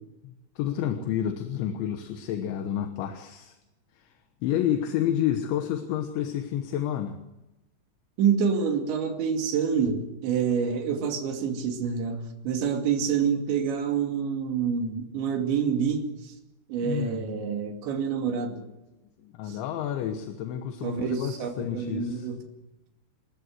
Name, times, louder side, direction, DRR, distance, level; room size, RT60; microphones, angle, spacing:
voice 1, 0.2-3.6 4.0-4.1 4.4-7.2 16.8-17.5 18.7-18.8 19.2-22.3, left 10 dB, 75° left, 6 dB, 3.3 m, -30 dB
voice 2, 8.2-16.3 16.7-18.6 19.5-19.6 20.8-22.4, right 6 dB, 65° right, 4 dB, 4.6 m, -27 dB
28.5 x 13.0 x 7.9 m, 0.96 s
omnidirectional pair, 5.9 m